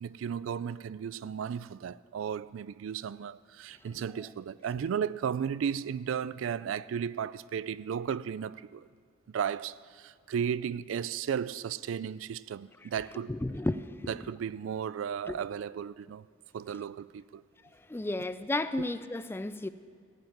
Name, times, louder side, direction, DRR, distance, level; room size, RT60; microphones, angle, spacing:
voice 1, 0.0-8.9 9.3-13.3 14.1-16.2 16.5-17.4, right 8 dB, 80° right, 0.3 m, -34 dB
voice 2, 13.3-14.1 15.3-15.4 17.9-19.7, left 2 dB, 10° left, 0.3 m, -33 dB
16.0 x 5.6 x 9.3 m
head